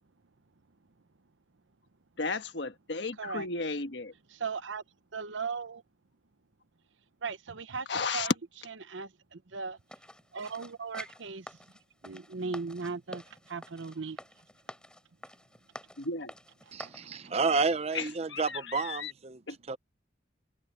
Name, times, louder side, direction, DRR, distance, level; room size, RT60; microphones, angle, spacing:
voice 1, 2.2-4.1 7.9-8.3 16.0-16.3 17.9-19.1 19.5-19.6, left 4 dB, 65° left, 1.3 m, -34 dB
voice 2, 4.3-4.8 5.1-5.8 7.2-7.9 8.1-8.3 8.8-9.8 10.3-11.5 12.0-14.2 16.8-16.9, right 5 dB, 85° right, 0.9 m, -37 dB
sound 1, 9.9-17.0 17.6-17.7, left 1 dB, 5° left, 5.2 m, -48 dB
voice 3, 16.7-19.4 19.7-19.8, right 4 dB, 35° right, 0.6 m, -30 dB
head